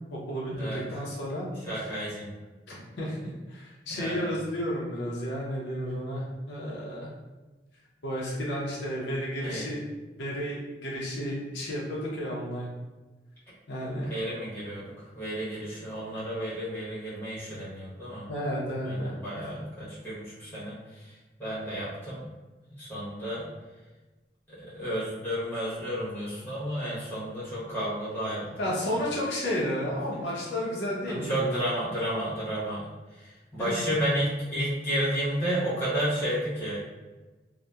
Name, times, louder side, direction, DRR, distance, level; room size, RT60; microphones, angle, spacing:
voice 1, 0.1-1.5 1.8-1.9 2.7-7.1 8.0-9.8 10.2-12.7 13.7-14.1 18.3-19.2 28.6-31.6 33.6-33.9, equal, 80° left, -4 dB, 0.6 m, -32 dB
voice 2, 1.6-2.3 3.9-4.3 9.4-9.7 14.0-18.3 18.8-22.2 22.7-23.5 24.5-28.5 29.0-29.1 31.0-32.9 33.1-36.8, equal, 10° left, -10 dB, 0.9 m, -32 dB
2.7 x 2.1 x 2.2 m, 1.2 s
head